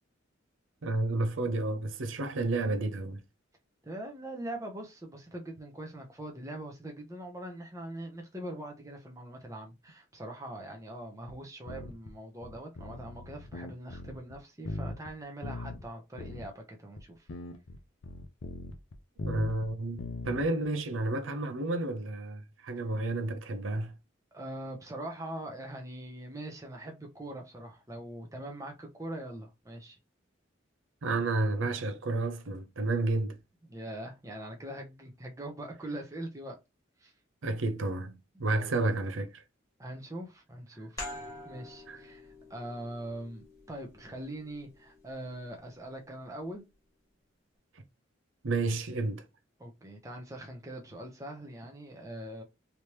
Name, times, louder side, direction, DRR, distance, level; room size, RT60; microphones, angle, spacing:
voice 1, 0.8-3.2 19.2-23.9 31.0-33.4 37.4-39.4 41.9-42.0 48.4-49.2, right 2 dB, 80° right, 0.6 m, -31 dB
voice 2, 3.8-17.3 24.3-30.0 33.6-36.6 37.0-37.1 38.3-38.7 39.8-41.0 41.4-42.2 42.5-46.6 49.6-52.4, right 1 dB, 15° right, 0.8 m, -42 dB
sound 1, 11.3-11.4 11.7-12.1 12.4-14.4 14.6-15.1 15.4-15.9 16.2-16.5 17.0-17.1 17.3-19.7 20.0-20.5, left 2 dB, 75° left, 0.6 m, -39 dB
sound 2, 41.0-46.2, left 1 dB, 15° left, 1.4 m, -47 dB
3.3 x 2.9 x 3.0 m
head